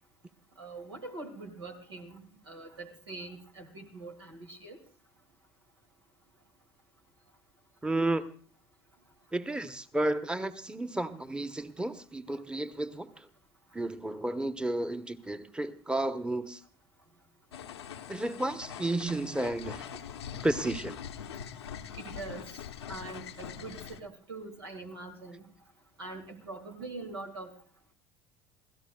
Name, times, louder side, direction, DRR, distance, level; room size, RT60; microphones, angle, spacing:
voice 1, 0.6-4.8 21.9-22.6 22.9-25.5 26.0-27.5, right 3 dB, 90° right, 2 dB, 2.2 m, -43 dB
voice 2, 7.8-8.3 9.3-13.3 13.7-16.6 18.1-19.9 20.4-21.0, right 2 dB, 5° right, 11 dB, 0.9 m, -32 dB
sound 1, 17.5-24.0, left 8 dB, 85° left, 0.8 m, -43 dB
27.0 x 16.5 x 2.3 m, 0.41 s
hypercardioid pair, 65°, 13 cm